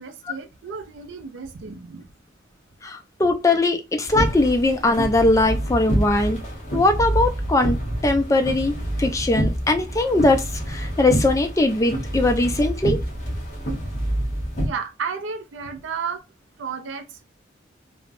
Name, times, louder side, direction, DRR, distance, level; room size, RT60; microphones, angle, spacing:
voice 1, 0.0-2.1 14.6-16.2 16.6-17.2, right 6 dB, 85° right, 0.4 m, -32 dB
voice 2, 2.8-6.4 6.7-7.8 8.0-13.0, left 2 dB, 15° left, 0.4 m, -20 dB
sound 1, 4.0-14.7, equal, 40° left, 0.9 m, -27 dB
3.2 x 2.0 x 2.4 m
head